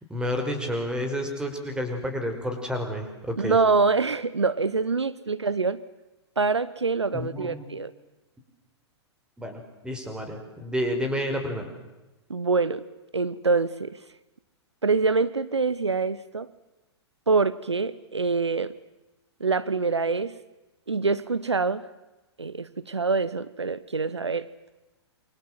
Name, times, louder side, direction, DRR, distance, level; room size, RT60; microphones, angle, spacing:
voice 1, 0.1-3.6 7.1-7.6 9.4-11.7, equal, 5° right, 4 dB, 5.5 m, -30 dB
voice 2, 3.4-5.8 6.4-7.9 12.3-12.8 13.1-14.0 14.8-16.5 17.3-18.7 19.4-20.4 20.9-21.9 22.4-24.5, right 4 dB, 80° right, 16 dB, 1.0 m, -25 dB
28.5 x 25.0 x 7.7 m, 1.1 s
figure-of-eight pair, 105°, 14 cm